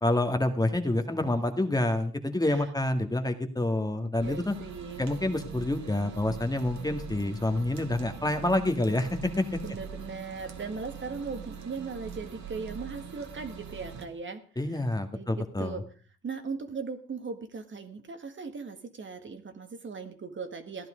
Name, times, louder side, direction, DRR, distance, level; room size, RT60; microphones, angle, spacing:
voice 1, 0.0-4.5 5.0-9.6 14.6-15.8, left 1 dB, 10° left, 6 dB, 1.9 m, -28 dB
voice 2, 4.2-5.0 9.6-14.4 14.7-14.8 15.1-15.8 16.2-20.9, right 5 dB, 40° right, 7 dB, 1.7 m, -38 dB
sound 1, 4.2-14.1, right 6 dB, 65° right, 2.2 m, -43 dB
15.0 x 10.5 x 5.1 m, 0.41 s
cardioid pair, 90°, 30 cm